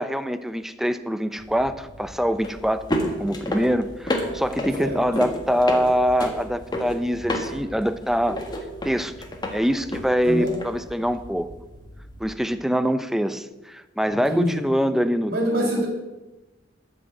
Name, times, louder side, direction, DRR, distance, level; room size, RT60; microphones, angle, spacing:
voice 1, 0.0-8.4 8.8-9.1 9.5-11.5 12.2-15.9, equal, ahead, 12 dB, 0.5 m, -24 dB
sound 1, 1.4-12.3, equal, 25° left, 1.6 m, -32 dB
voice 2, 14.1-14.6 15.3-15.9, equal, 55° right, 1 dB, 3.5 m, -25 dB
13.0 x 6.2 x 7.8 m, 1.1 s
head